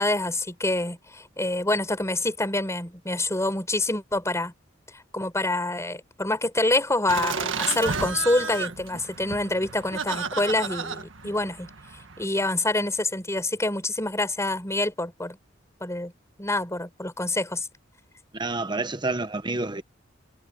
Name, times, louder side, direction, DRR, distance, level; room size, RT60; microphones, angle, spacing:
voice 1, 0.0-4.5 5.1-11.7 12.2-15.4 15.8-16.1 16.4-17.7, left 2 dB, 15° left, 4.8 m, -26 dB
Laughter, 7.1-12.3, right 5 dB, 75° right, 1.8 m, -32 dB
voice 2, 18.3-19.8, right 2 dB, 25° right, 1.1 m, -28 dB
head